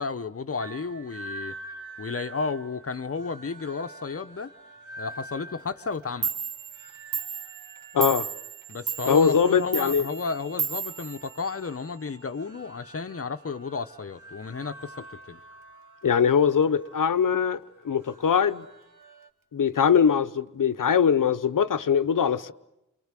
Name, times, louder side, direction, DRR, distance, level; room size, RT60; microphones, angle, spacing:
voice 1, 0.0-1.5 2.0-4.5 5.0-6.3 8.7-15.4, left 4 dB, 45° left, 0.9 m, -32 dB
sound 1, 0.6-19.3, right 2 dB, 65° right, 2.2 m, -47 dB
Clock, 5.9-6.0 6.2-11.9, right 6 dB, 90° right, 0.9 m, -34 dB
voice 2, 7.9-8.3 9.1-10.0 16.0-17.6 17.8-18.7 19.5-22.5, left 7 dB, 70° left, 0.9 m, -22 dB
28.5 x 23.5 x 7.5 m
wide cardioid pair, 85°, 33 cm